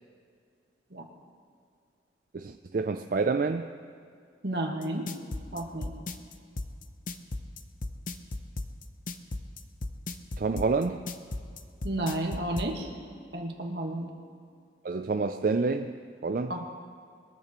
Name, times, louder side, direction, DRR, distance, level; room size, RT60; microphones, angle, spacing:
voice 1, 2.3-3.7 10.4-11.0 14.8-16.0 16.2-16.6, right 4 dB, 50° right, 7 dB, 0.4 m, -28 dB
voice 2, 4.4-5.1 5.5-5.9 11.8-12.9 13.3-14.1 16.5-16.7, right 1 dB, 65° right, 2 dB, 1.6 m, -32 dB
sound 1, 4.8-12.7, left 2 dB, 45° left, 0.7 m, -35 dB
22.5 x 14.0 x 3.1 m, 2.4 s
head